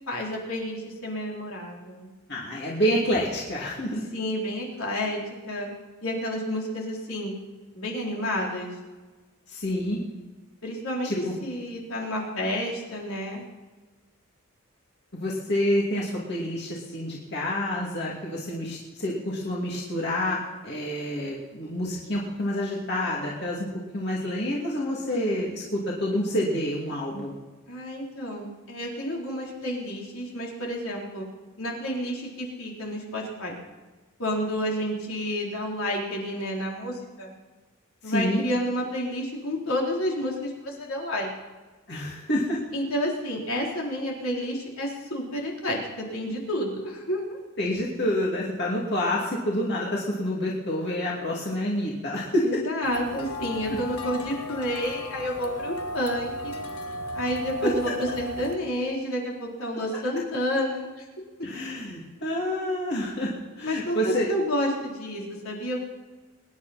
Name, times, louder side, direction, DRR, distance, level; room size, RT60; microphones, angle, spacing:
voice 1, 0.1-2.1 4.1-5.2 5.5-5.7 6.0-7.4 7.7-8.8 10.6-13.4 27.7-31.3 31.6-33.6 34.2-37.3 38.0-41.3 42.7-47.4 52.4-56.6 57.1-61.0 63.6-65.8, equal, 70° left, -2 dB, 3.9 m, -30 dB
voice 2, 2.3-4.0 9.5-10.0 11.0-11.3 15.1-23.7 23.9-27.3 38.0-38.4 41.9-42.6 47.6-52.5 57.6-57.7 61.4-63.3 63.6-64.3, equal, 50° left, -4 dB, 2.7 m, -28 dB
sound 1, 52.8-58.6, equal, 90° left, 1.5 m, -35 dB
24.0 x 10.5 x 4.3 m, 1.3 s
head